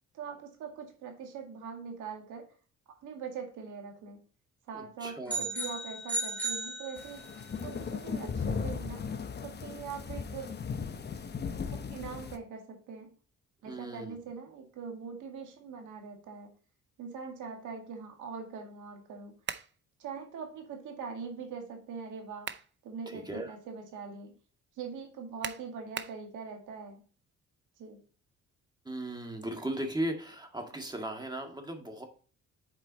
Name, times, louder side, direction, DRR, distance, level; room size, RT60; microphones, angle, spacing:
voice 1, 0.1-2.5 3.0-4.2 4.7-7.2 7.6-9.0 9.4-10.5 11.7-13.1 13.6-16.5 17.0-19.3 20.0-22.5 22.8-24.3 24.8-27.0 27.8-28.0, right 5 dB, 85° right, 2 dB, 2.1 m, -42 dB
voice 2, 4.7-5.4 13.7-14.2 23.1-23.5 28.9-32.0, right 1 dB, 15° right, 3 dB, 1.8 m, -37 dB
sound 1, 5.3-7.5, right 2 dB, 5° left, 2.5 m, -35 dB
sound 2, 7.0-12.4, left 5 dB, 35° left, 0.9 m, -37 dB
sound 3, 19.4-19.8 22.1-22.7 23.2-23.3 25.4-26.2, right 8 dB, 40° right, 0.6 m, -39 dB
7.6 x 4.6 x 4.1 m, 0.39 s
cardioid pair, 90°, 30 cm